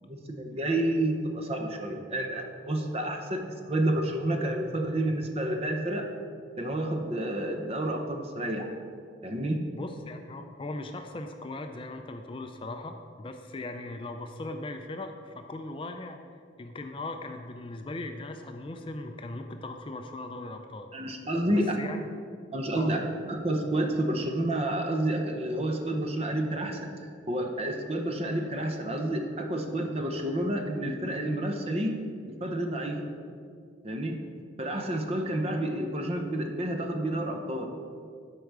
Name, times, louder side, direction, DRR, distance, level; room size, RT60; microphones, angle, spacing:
voice 1, 0.0-6.1 6.6-8.7 9.2-9.6 20.9-21.8 22.5-23.0 23.3-26.9 27.3-31.9 32.3-33.0 33.8-34.2 34.6-37.7, right 1 dB, 30° right, 4 dB, 0.7 m, -29 dB
voice 2, 9.8-16.2 16.6-20.9 21.5-22.1 22.8-22.9, left 2 dB, 25° left, 6 dB, 0.4 m, -39 dB
8.0 x 4.7 x 6.6 m, 2.2 s
head